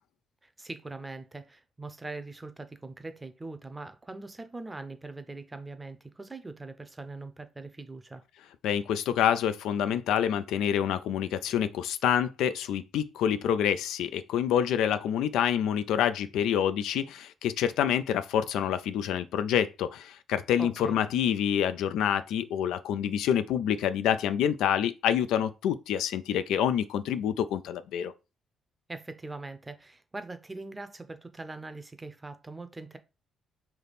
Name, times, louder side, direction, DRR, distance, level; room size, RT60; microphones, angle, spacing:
voice 1, 0.4-8.2 20.6-21.0 28.9-33.0, right 3 dB, 20° right, 0.6 m, -42 dB
voice 2, 8.6-28.1, left 9 dB, 85° left, 0.3 m, -27 dB
3.4 x 2.8 x 4.0 m
cardioid pair, 90°, 0 cm